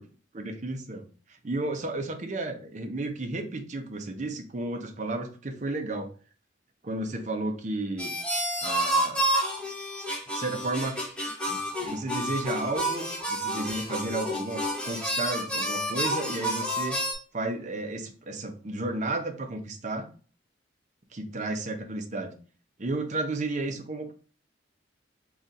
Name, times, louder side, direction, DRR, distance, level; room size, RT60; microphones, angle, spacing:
voice 1, 0.3-6.1 6.8-8.1 8.6-9.3 10.3-11.0 11.5-17.0 17.3-20.1 21.1-22.3 22.8-24.1, right 2 dB, 40° right, 6 dB, 0.6 m, -33 dB
sound 1, 8.0-17.1, equal, 5° left, 0.7 m, -30 dB
4.1 x 2.4 x 3.7 m, 0.40 s
head